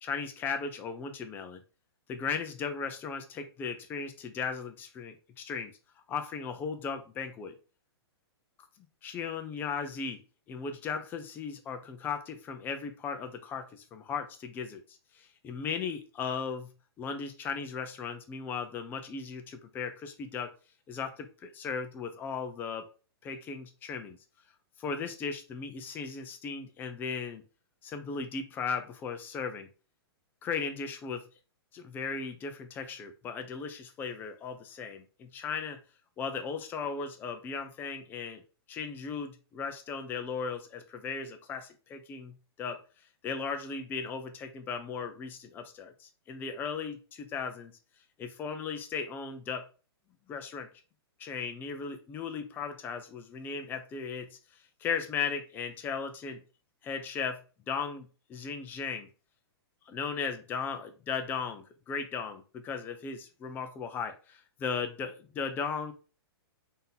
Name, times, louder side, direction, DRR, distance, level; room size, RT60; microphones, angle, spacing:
voice 1, 0.0-1.6 2.1-5.7 6.1-7.5 9.0-10.2 10.5-16.7 17.0-20.5 20.9-22.9 23.2-24.2 24.8-27.4 27.8-29.7 30.4-31.2 31.7-35.8 36.2-38.4 38.7-42.8 43.2-47.7 48.2-49.7 50.3-50.7 51.2-54.4 54.8-56.4 56.8-59.1 59.9-65.9, left 5 dB, 15° left, 7 dB, 0.5 m, -36 dB
4.0 x 2.7 x 3.7 m, 0.35 s
hypercardioid pair, 155°, 14 cm